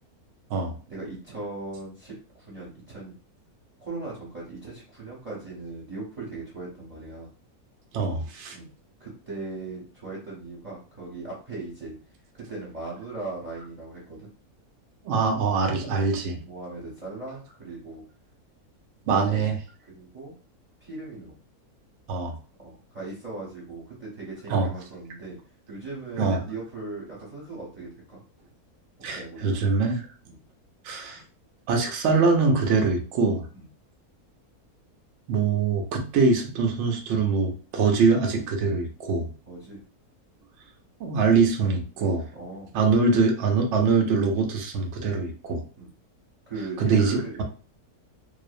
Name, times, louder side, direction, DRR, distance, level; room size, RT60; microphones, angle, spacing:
voice 1, 0.9-3.2 3.8-7.3 8.5-8.7 9.0-12.0 12.3-14.3 16.0-16.1 16.4-18.0 19.0-19.5 19.9-20.3 20.8-21.3 22.6-25.4 25.7-28.2 29.0-29.4 30.2-30.4 33.5-33.7 39.5-39.8 42.3-42.7 45.8-45.9 46.5-47.4, right 3 dB, 35° right, -6 dB, 0.7 m, -38 dB
voice 2, 7.9-8.6 15.0-16.4 19.1-19.5 22.1-22.3 24.5-24.7 26.2-26.4 29.0-30.1 30.8-31.2 31.7-33.5 35.3-39.3 41.0-42.3 42.7-45.6 46.8-47.4, right 4 dB, 65° right, 2 dB, 0.7 m, -23 dB
2.6 x 2.0 x 2.5 m, 0.37 s
omnidirectional pair, 1.6 m